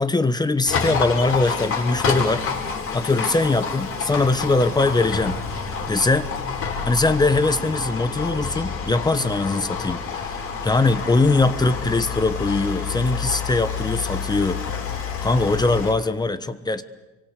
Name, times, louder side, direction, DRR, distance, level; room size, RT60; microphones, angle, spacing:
voice 1, 0.0-2.4 2.9-6.3 6.8-14.8 15.2-16.8, left 3 dB, 15° left, 12 dB, 1.2 m, -21 dB
Livestock farm animals working animals, 0.7-15.9, left 5 dB, 45° left, 6.6 m, -28 dB
28.5 x 24.5 x 6.6 m, 1.1 s
supercardioid pair, 115°, 30 cm